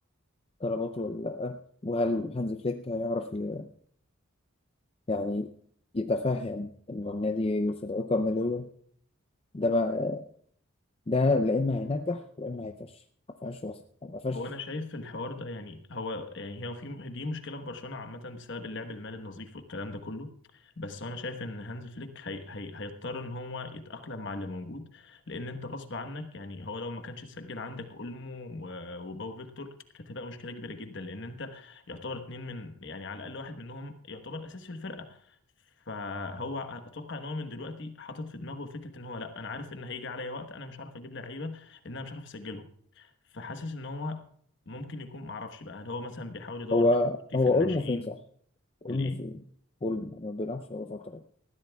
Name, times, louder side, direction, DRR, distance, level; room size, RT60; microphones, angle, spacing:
voice 1, 0.6-3.7 5.1-5.5 5.9-8.7 9.5-10.3 11.1-13.0 13.4-14.4 46.7-48.2 48.8-49.4 49.8-51.2, left 2 dB, 25° left, 7 dB, 0.5 m, -29 dB
voice 2, 14.3-35.4 35.8-42.7 42.9-44.2 44.7-46.9 47.5-48.1 48.9-49.2, left 2 dB, 55° left, 8 dB, 1.2 m, -39 dB
20.5 x 14.5 x 2.3 m, 0.63 s
head